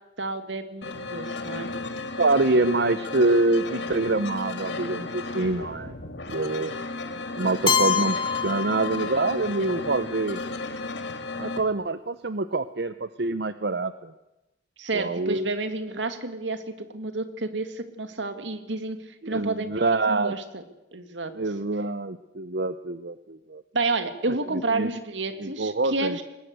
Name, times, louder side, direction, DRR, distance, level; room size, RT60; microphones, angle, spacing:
voice 1, 0.2-1.7 14.8-19.0 19.3-19.7 20.1-20.6 20.9-21.3 23.7-26.2, right 3 dB, 80° right, 9 dB, 2.3 m, -30 dB
sound 1, 0.8-11.6, left 3 dB, 70° left, 2.2 m, -34 dB
voice 2, 2.2-5.9 6.3-6.8 7.4-10.4 11.4-14.1 14.9-15.5 19.2-20.3 21.3-23.6 24.5-24.9 25.4-26.2, right 2 dB, 60° right, 12 dB, 0.7 m, -25 dB
Keyboard (musical), 7.7-9.6, left 7 dB, 25° left, 1.2 m, -26 dB
21.5 x 20.0 x 8.1 m, 0.96 s
head